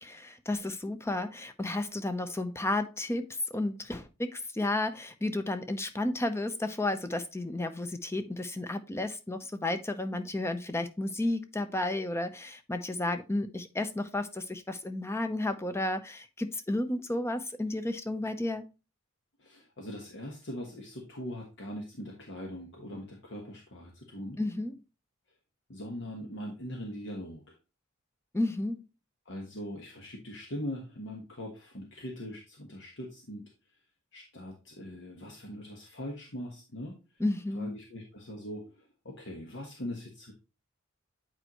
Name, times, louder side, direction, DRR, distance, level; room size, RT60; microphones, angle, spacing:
voice 1, 0.0-18.6 24.4-24.7 28.3-28.8 37.2-37.8, left 2 dB, 15° left, 0.7 m, -32 dB
voice 2, 19.4-24.4 25.7-27.5 29.2-33.5 34.1-37.0 37.5-40.3, equal, 60° left, 1.3 m, -41 dB
8.6 x 4.5 x 3.0 m
head